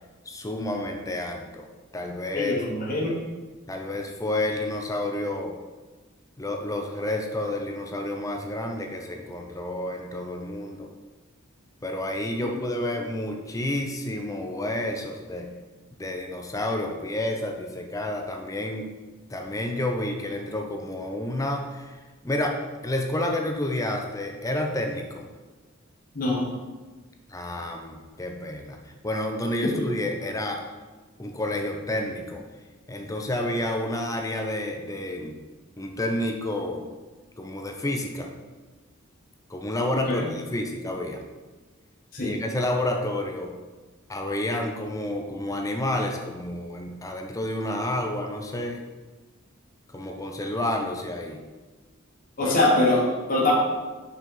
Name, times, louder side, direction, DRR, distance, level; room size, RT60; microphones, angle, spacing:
voice 1, 0.3-1.7 1.9-2.6 3.7-5.6 6.4-10.9 11.8-15.5 16.0-18.9 19.3-22.0 22.2-22.6 22.8-25.2 27.3-30.7 31.2-32.4 32.9-35.3 35.8-36.8 37.4-38.3 39.5-41.2 42.2-43.5 44.1-48.8 49.9-51.4 52.4-52.6, left 1 dB, 15° left, 3 dB, 0.6 m, -30 dB
voice 2, 2.3-3.1 26.1-26.5 29.6-29.9 40.1-40.3 42.1-42.3 52.4-53.5, left 2 dB, 40° left, -4 dB, 1.1 m, -23 dB
6.0 x 4.2 x 5.4 m, 1.3 s
head